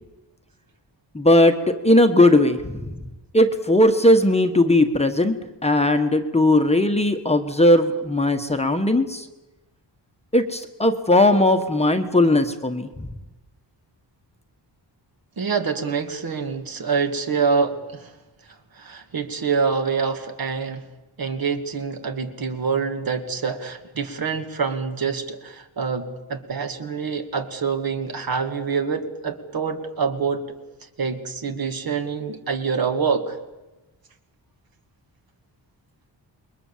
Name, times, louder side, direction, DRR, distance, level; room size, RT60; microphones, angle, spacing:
voice 1, 1.1-2.9 3.3-5.4 5.6-9.3 10.3-13.1, left 1 dB, 15° left, 5 dB, 1.2 m, -18 dB
voice 2, 15.4-18.1 18.7-20.9 21.2-30.4 31.0-33.4, right 5 dB, 50° right, 6 dB, 2.3 m, -26 dB
28.0 x 22.5 x 7.3 m, 1.1 s
wide cardioid pair, 165°, 44 cm